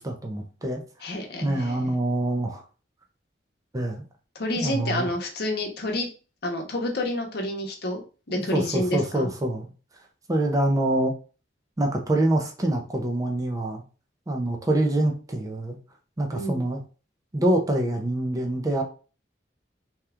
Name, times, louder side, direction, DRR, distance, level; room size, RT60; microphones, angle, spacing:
voice 1, 0.0-1.1 1.4-2.6 3.7-4.0 4.6-5.1 8.5-9.7 10.3-11.1 11.8-13.8 14.3-15.8 16.2-16.8 17.3-18.8, right 1 dB, 20° right, 2 dB, 0.5 m, -25 dB
voice 2, 1.0-1.9 4.3-6.1 6.4-8.0 8.3-9.3 16.3-16.6, left 1 dB, 65° left, 2 dB, 0.8 m, -29 dB
2.8 x 2.3 x 3.4 m, 0.36 s
head